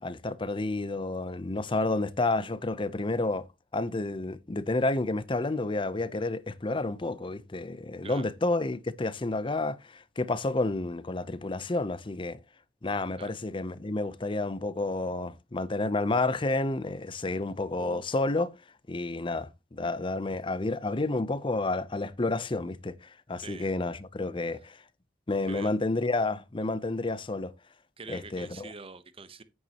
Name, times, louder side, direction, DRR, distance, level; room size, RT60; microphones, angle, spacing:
voice 1, 0.0-3.5 3.7-12.4 12.8-18.5 18.9-24.8 25.3-27.5 28.1-28.7, left 2 dB, 30° left, 0.7 m, -30 dB
voice 2, 28.0-29.4, right 4 dB, 35° right, 0.9 m, -44 dB
9.3 x 9.3 x 2.9 m
head